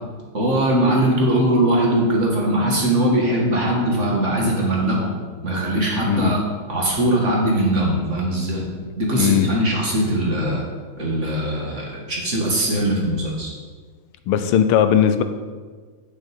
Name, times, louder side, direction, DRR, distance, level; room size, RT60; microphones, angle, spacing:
voice 1, 0.3-5.1 5.4-6.4 6.7-8.7 9.0-10.6 11.0-13.5, right 1 dB, 35° right, -2 dB, 1.8 m, -20 dB
voice 2, 6.0-6.4 9.1-9.6 14.3-15.2, left 9 dB, 90° left, 10 dB, 1.6 m, -18 dB
6.4 x 6.3 x 7.5 m, 1.5 s
omnidirectional pair, 2.4 m